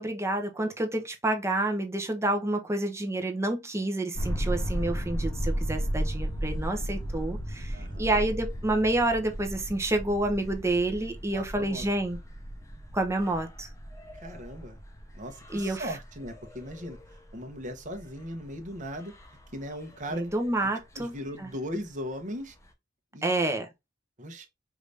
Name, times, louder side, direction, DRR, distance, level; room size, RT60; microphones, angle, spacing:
voice 1, 0.0-12.2 12.9-13.7 15.5-15.9 20.1-21.5 23.2-23.7, right 2 dB, 15° right, 0.8 m, -29 dB
sound 1, 4.1-20.5 21.0-21.1 21.2-21.3 22.6-22.7, equal, 15° left, 0.7 m, -35 dB
voice 2, 7.7-8.2 11.3-11.9 14.2-14.8 15.1-17.0 17.3-19.1 19.5-20.3 20.9-22.6 23.1-23.4 24.2-24.5, equal, 40° right, 1.0 m, -38 dB
4.9 x 2.6 x 3.3 m
head